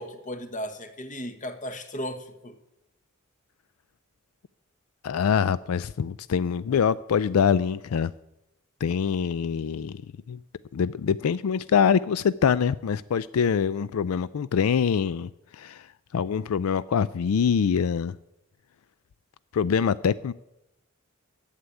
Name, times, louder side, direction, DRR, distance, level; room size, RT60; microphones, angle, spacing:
voice 1, 0.0-2.6, equal, 35° left, 1.3 m, -36 dB
voice 2, 5.0-8.1 8.8-10.0 10.3-10.4 10.7-15.3 15.6-15.8 16.1-18.1 19.5-20.3, left 7 dB, 85° left, 0.4 m, -24 dB
11.0 x 8.3 x 9.7 m
head